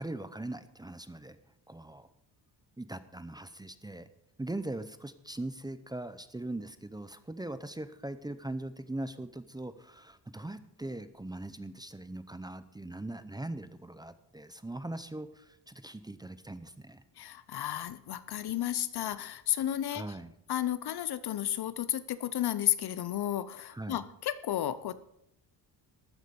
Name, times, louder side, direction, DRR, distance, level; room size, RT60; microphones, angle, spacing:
voice 1, 0.0-1.4 1.7-2.1 2.8-4.1 4.4-17.0 19.9-20.3 23.7-24.0, right 2 dB, 10° right, 12 dB, 0.6 m, -40 dB
voice 2, 17.2-20.0 20.5-24.9, left 12 dB, 65° left, 15 dB, 0.8 m, -32 dB
13.5 x 9.2 x 5.3 m, 0.79 s
cardioid pair, 120°, 41 cm